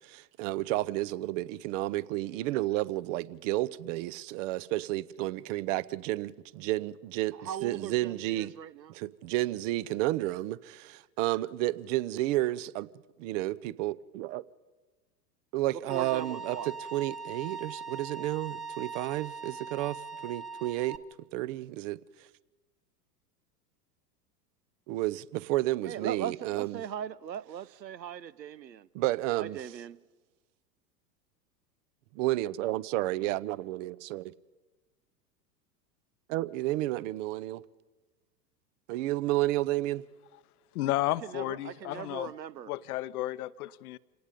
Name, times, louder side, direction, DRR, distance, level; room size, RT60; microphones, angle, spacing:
voice 1, 0.0-8.5 8.9-12.9 13.2-14.4 15.5-21.0 21.3-22.0 24.9-26.8 29.0-29.7 32.1-34.3 36.3-37.6 38.9-40.0, right 16 dB, 50° right, 0.8 m, -31 dB
voice 2, 7.3-8.9 15.9-16.7 25.9-28.8 29.4-30.0 41.2-42.7, right 9 dB, 85° right, 0.8 m, -39 dB
Bowed string instrument, 15.9-21.0, right 4 dB, ahead, 1.2 m, -41 dB
voice 3, 40.7-42.3 42.6-44.0, left 15 dB, 60° left, 0.8 m, -32 dB
28.0 x 18.5 x 5.2 m
hypercardioid pair, 95°, 50 cm